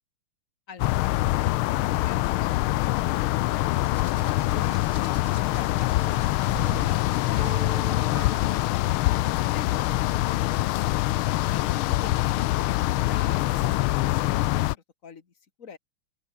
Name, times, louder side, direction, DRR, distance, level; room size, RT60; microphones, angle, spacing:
voice 1, 0.7-4.1 4.4-7.0 7.2-9.1 11.5-15.3 15.6-15.8, left 6 dB, 40° left, 2.2 m, -46 dB
sound 1, 0.8-14.7, left 17 dB, 80° left, 1.4 m, -24 dB
Hands, 3.7-7.7 8.7-8.9, right 4 dB, 45° right, 3.0 m, -44 dB
sound 2, 7.4-10.3, right 4 dB, 25° right, 1.7 m, -43 dB
open air
omnidirectional pair, 2.4 m